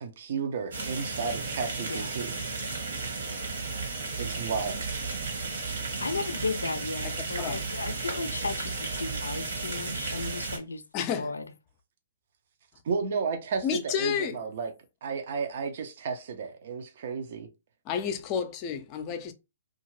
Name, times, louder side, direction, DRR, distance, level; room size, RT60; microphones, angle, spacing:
voice 1, 0.0-2.4 4.2-5.0 12.8-14.7 15.0-17.5, right 5 dB, 55° right, 0.6 m, -33 dB
sound 1, 0.7-10.6, right 4 dB, 70° right, 1.4 m, -34 dB
voice 2, 1.9-2.2 6.0-10.8 11.2-11.4, left 3 dB, 90° left, 0.4 m, -34 dB
voice 3, 7.0-7.6 10.9-11.4 13.6-14.4 17.9-19.3, left 7 dB, 35° left, 0.5 m, -31 dB
2.7 x 2.4 x 3.0 m
hypercardioid pair, 130°, 0 cm